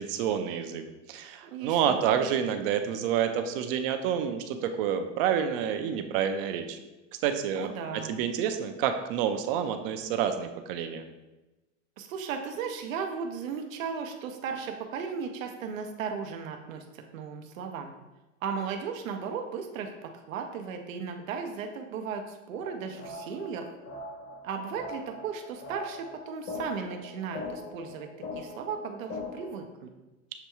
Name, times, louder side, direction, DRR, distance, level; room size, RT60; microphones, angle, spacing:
voice 1, 0.0-6.8 7.2-7.7 8.1-11.1, right 8 dB, 45° right, 7 dB, 0.5 m, -28 dB
voice 2, 1.4-2.2 7.6-8.2 12.0-17.9 18.4-23.7 24.4-28.1 28.4-29.9, right 6 dB, 90° right, 5 dB, 0.6 m, -36 dB
sound 1, 22.5-29.5, left 3 dB, 30° left, 0.8 m, -41 dB
6.7 x 2.2 x 2.9 m, 1.1 s
supercardioid pair, 135°, 39 cm